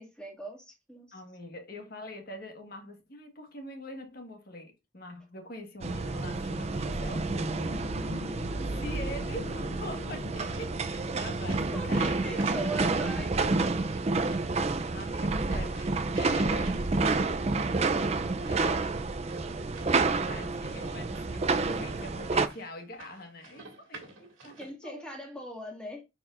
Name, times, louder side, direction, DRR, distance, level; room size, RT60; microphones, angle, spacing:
voice 1, 0.0-1.2 11.7-13.8 24.6-26.0, right 1 dB, 5° left, 1.9 m, -40 dB
voice 2, 1.1-12.7 14.9-16.8 18.5-18.9 20.3-25.2, left 1 dB, 50° left, 1.5 m, -44 dB
sound 1, 5.8-22.5, right 3 dB, 30° right, 0.4 m, -29 dB
sound 2, 6.6-11.6, left 2 dB, 90° left, 2.0 m, -43 dB
sound 3, 8.5-24.7, right 3 dB, 85° right, 2.1 m, -51 dB
9.7 x 4.6 x 2.5 m
head